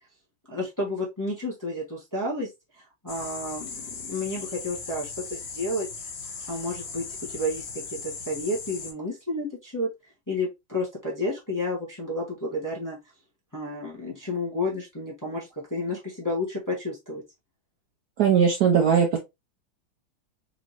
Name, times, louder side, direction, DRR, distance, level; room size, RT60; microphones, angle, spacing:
voice 1, 0.5-2.5 3.0-5.9 6.5-9.9 10.3-13.0 13.5-17.2, left 1 dB, 10° left, 1.1 m, -31 dB
sound 1, 3.1-8.9, left 4 dB, 75° left, 1.6 m, -38 dB
voice 2, 18.2-19.2, right 7 dB, 70° right, 1.0 m, -19 dB
4.1 x 2.9 x 2.9 m
omnidirectional pair, 2.2 m